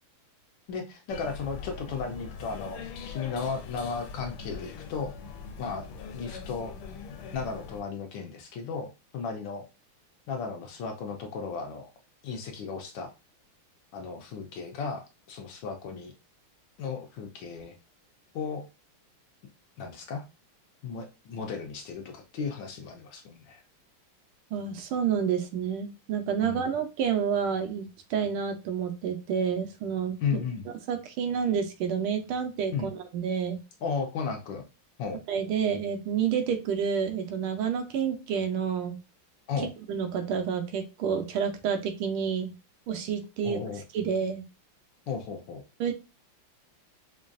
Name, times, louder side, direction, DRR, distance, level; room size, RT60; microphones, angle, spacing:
voice 1, 0.7-5.1 5.6-5.9 6.1-6.7 7.3-9.6 10.3-11.9 12.2-13.1 13.9-16.1 16.8-17.8 18.3-18.6 19.8-20.3 20.8-23.6 26.4-26.7 30.2-30.7 32.7-32.9 33.8-34.6 35.0-35.2 39.5-39.7 43.4-43.8 45.1-45.6, left 5 dB, 75° left, 3 dB, 1.2 m, -35 dB
sound 1, 1.1-7.8, left 5 dB, 90° left, 1.5 m, -42 dB
voice 2, 24.5-30.4 30.9-33.6 35.3-39.0 39.9-42.5 42.9-43.6 43.9-44.4 45.8-45.9, right 7 dB, 85° right, 6 dB, 1.5 m, -29 dB
5.1 x 2.3 x 2.5 m, 0.29 s
omnidirectional pair, 2.4 m